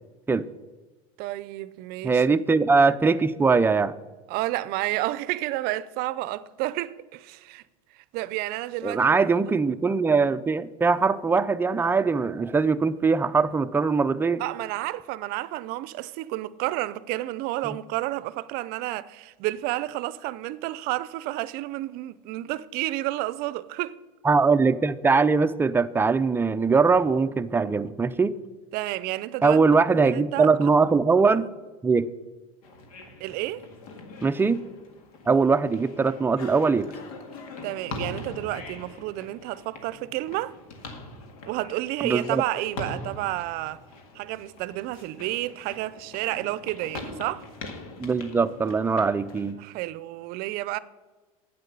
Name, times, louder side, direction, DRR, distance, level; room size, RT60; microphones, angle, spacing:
voice 1, 1.2-2.4 4.3-7.6 8.1-9.6 14.4-24.0 28.7-29.6 29.9-30.7 33.2-33.6 37.6-40.5 41.4-43.8 44.1-47.5 49.6-50.8, right 17 dB, 60° right, 0.5 m, -31 dB
voice 2, 2.0-3.9 8.8-14.4 17.6-17.8 24.2-28.4 29.4-31.5 31.8-32.1 34.2-34.6 35.3-36.9 42.0-42.4 48.0-49.6, right 4 dB, 10° right, 0.5 m, -21 dB
sound 1, 32.6-49.5, left 2 dB, 80° left, 1.9 m, -42 dB
9.2 x 8.2 x 6.8 m
supercardioid pair, 105°, 18 cm